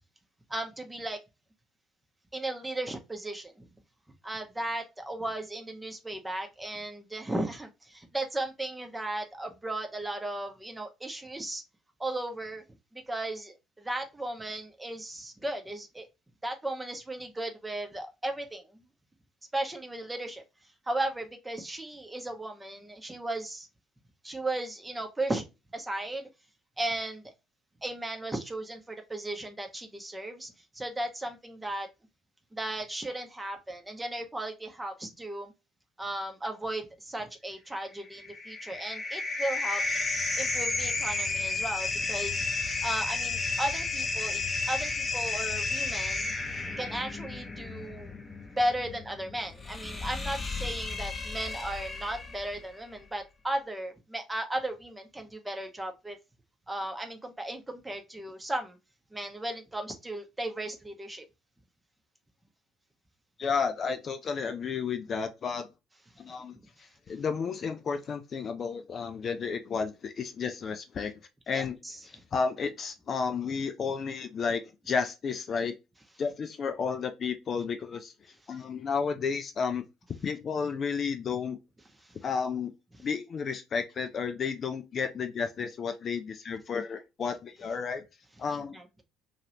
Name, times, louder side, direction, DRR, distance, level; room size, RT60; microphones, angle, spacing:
voice 1, 0.5-1.2 2.3-3.7 4.2-11.6 12.0-12.6 12.9-16.1 16.4-18.8 19.5-20.4 20.9-23.7 24.2-25.4 25.7-26.3 26.8-27.2 27.8-31.9 32.5-35.5 36.0-39.8 40.4-42.4 42.8-44.4 44.7-46.3 46.8-48.1 48.5-56.2 56.7-58.8 59.1-61.2 66.3-66.4 71.5-72.0 82.0-82.2 88.5-89.0, right 1 dB, 15° right, 0.8 m, -35 dB
sound 1, 38.0-52.6, left 3 dB, 20° left, 0.8 m, -32 dB
voice 2, 63.4-65.7 66.2-66.5 67.1-71.1 71.5-71.8 72.3-75.7 76.2-78.1 78.5-79.9 80.2-81.6 82.2-82.7 83.0-88.0 88.4-88.8, left 5 dB, 40° left, 0.4 m, -32 dB
3.0 x 2.9 x 2.5 m
figure-of-eight pair, 55°, 0 cm